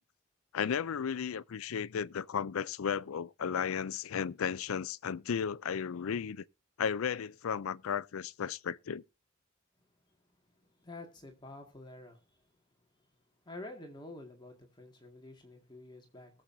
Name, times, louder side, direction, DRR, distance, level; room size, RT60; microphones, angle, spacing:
voice 1, 0.5-6.4 6.8-9.0, left 7 dB, 85° left, 0.4 m, -34 dB
voice 2, 10.8-12.2 13.5-16.3, left 2 dB, 20° left, 2.0 m, -48 dB
21.0 x 7.6 x 2.7 m
head